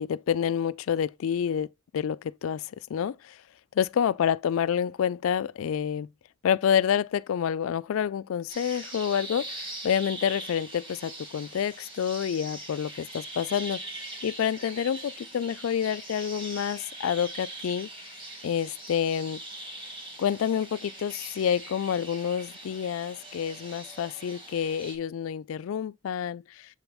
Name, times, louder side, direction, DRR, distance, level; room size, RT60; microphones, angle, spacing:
voice 1, 0.0-1.7 1.9-3.4 3.8-6.1 6.4-18.1 18.4-19.4 20.2-26.8, left 8 dB, 75° left, 0.3 m, -28 dB
sound 1, 8.5-25.0, right 2 dB, 25° right, 1.4 m, -42 dB
7.6 x 4.0 x 3.5 m
head